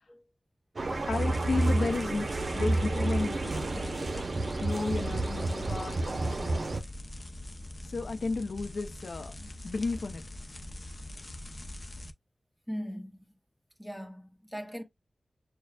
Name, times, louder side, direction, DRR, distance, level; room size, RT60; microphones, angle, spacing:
sound 1, 0.8-6.8, right 2 dB, 55° right, 0.6 m, -30 dB
voice 1, 1.1-4.0 4.6-6.8 7.8-10.2, left 3 dB, 80° left, 0.7 m, -33 dB
sound 2, 1.1-12.1, left 1 dB, 35° left, 0.7 m, -43 dB
voice 2, 12.7-13.2 13.8-14.8, equal, ahead, 1.3 m, -39 dB
6.6 x 2.3 x 2.3 m
wide cardioid pair, 80°, 0 cm